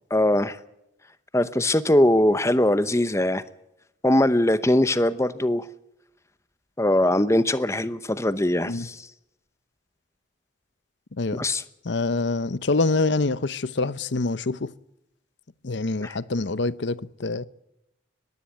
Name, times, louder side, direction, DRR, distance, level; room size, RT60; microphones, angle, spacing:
voice 1, 0.1-0.6 1.3-3.4 4.0-5.6 6.8-9.0 11.3-11.6 16.0-16.1, left 1 dB, 15° left, 0.8 m, -21 dB
voice 2, 11.1-11.4 11.8-14.7 15.6-17.5, left 3 dB, 65° left, 0.7 m, -25 dB
20.5 x 15.5 x 8.4 m
head